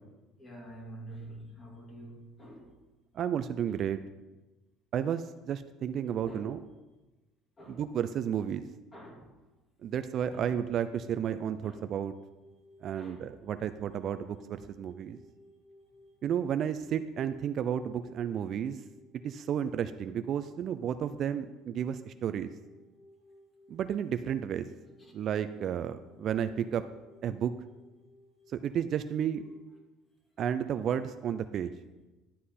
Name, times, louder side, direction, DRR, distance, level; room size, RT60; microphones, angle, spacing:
voice 1, 0.4-2.7 3.7-3.8 5.9-6.6 7.6-7.8 8.9-9.3 10.3-10.6 11.6-11.9 13.0-13.3 25.0-25.1 26.6-26.7, right 1 dB, 20° left, -1 dB, 2.4 m, -48 dB
voice 2, 3.1-4.0 4.9-6.6 7.7-8.6 9.8-12.1 12.8-15.2 16.2-18.8 19.2-22.5 23.7-24.7 25.1-26.8 27.2-27.5 28.6-29.4 30.4-31.7, right 9 dB, 40° right, 11 dB, 0.4 m, -32 dB
sound 1, 11.8-29.8, left 1 dB, 40° left, 2.7 m, -59 dB
11.5 x 7.5 x 4.2 m, 1.1 s
cardioid pair, 140°, 0 cm